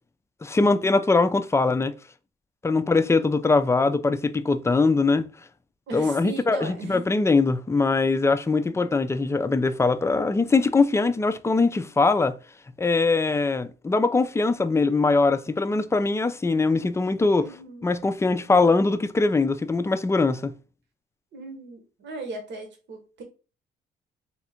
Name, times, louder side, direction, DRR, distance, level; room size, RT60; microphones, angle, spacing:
voice 1, 0.4-1.9 2.6-5.3 5.9-12.3 12.8-17.5 17.8-20.5, left 3 dB, 15° left, 0.3 m, -22 dB
voice 2, 5.9-7.1 8.7-8.9 17.4-17.9 21.3-23.2, right 3 dB, 65° right, 1.1 m, -38 dB
3.5 x 2.4 x 4.2 m
cardioid pair, 90°, 20 cm